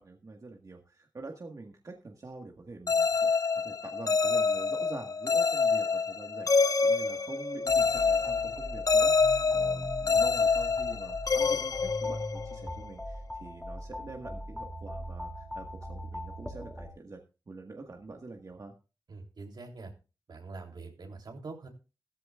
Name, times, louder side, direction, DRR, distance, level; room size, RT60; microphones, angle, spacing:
voice 1, 0.0-17.2 17.5-18.7, right 3 dB, 50° right, 2 dB, 1.7 m, -46 dB
sound 1, 2.9-12.7, left 4 dB, 50° left, 0.6 m, -27 dB
sound 2, 7.7-16.9, equal, 5° left, 2.9 m, -41 dB
voice 2, 19.1-19.9 20.3-21.7, right 3 dB, 80° right, 2 dB, 3.4 m, -44 dB
15.5 x 14.0 x 2.5 m, 0.31 s
wide cardioid pair, 80°, 7 cm